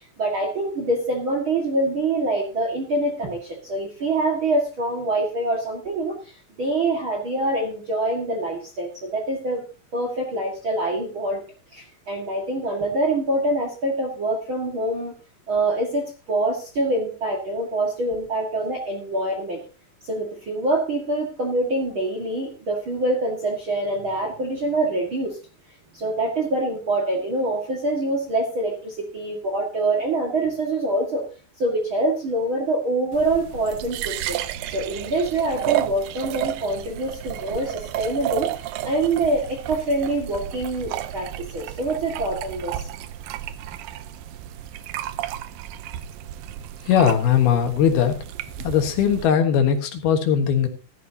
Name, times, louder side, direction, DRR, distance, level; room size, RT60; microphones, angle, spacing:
voice 1, 0.0-9.6 9.9-11.4 11.7-15.1 15.5-19.6 20.0-25.4 25.9-31.3 31.6-34.4 34.7-38.5 38.8-42.9, right 2 dB, 45° right, 2 dB, 1.8 m, -25 dB
sound 1, 33.1-49.3, right 12 dB, 80° right, 2.0 m, -32 dB
voice 2, 46.9-48.2 48.6-50.7, left 8 dB, 70° left, 6 dB, 3.3 m, -19 dB
15.0 x 13.0 x 2.8 m, 0.34 s
omnidirectional pair, 4.7 m